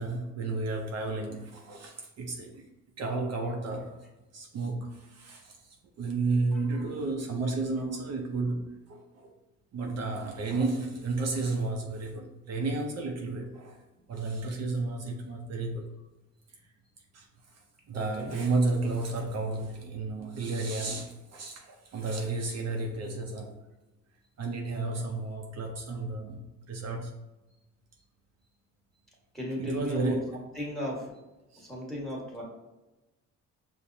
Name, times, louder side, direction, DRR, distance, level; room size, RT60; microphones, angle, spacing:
voice 1, 0.0-2.7 3.0-4.1 4.3-9.3 9.7-13.8 14.1-15.9 17.1-23.5 24.4-27.1 29.6-30.3 31.5-31.7, right 3 dB, 60° right, 2 dB, 0.6 m, -32 dB
voice 2, 17.9-18.3 29.3-30.2 30.5-31.2 31.6-32.4, left 1 dB, ahead, -4 dB, 1.4 m, -36 dB
5.6 x 2.1 x 2.6 m, 1.0 s
cardioid pair, 90°, 30 cm